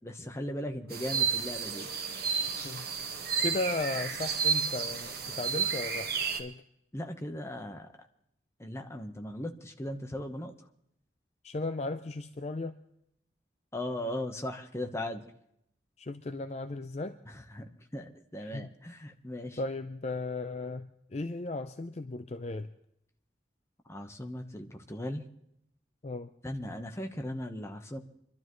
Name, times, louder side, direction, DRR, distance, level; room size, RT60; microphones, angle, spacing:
voice 1, 0.0-1.9 6.9-7.9 8.6-10.5 13.7-15.3 17.5-19.6 23.9-25.2 26.4-28.0, left 1 dB, 15° left, 4 dB, 1.1 m, -38 dB
sound 1, 0.9-6.4, right 6 dB, 60° right, 1.6 m, -31 dB
voice 2, 3.4-6.6 11.4-12.8 16.0-17.2 18.4-18.7 19.6-22.7 26.0-26.3, left 2 dB, 40° left, 9 dB, 0.5 m, -36 dB
25.5 x 12.5 x 3.1 m, 0.75 s
head